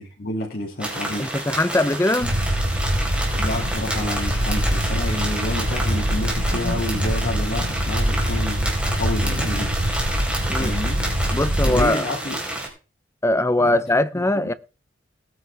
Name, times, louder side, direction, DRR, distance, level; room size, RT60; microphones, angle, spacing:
voice 1, 0.0-1.3 3.3-9.8 10.6-11.1 11.6-12.4 13.6-13.8 14.1-14.5, left 1 dB, 50° left, 2.4 m, -29 dB
sound 1, 0.8-12.7, right 1 dB, 5° right, 4.2 m, -29 dB
voice 2, 1.2-2.4 10.5-10.7 11.3-12.0 13.2-14.5, left 1 dB, 15° left, 0.6 m, -21 dB
sound 2, 2.2-11.8, equal, 70° right, 4.1 m, -24 dB
19.5 x 9.3 x 3.4 m
head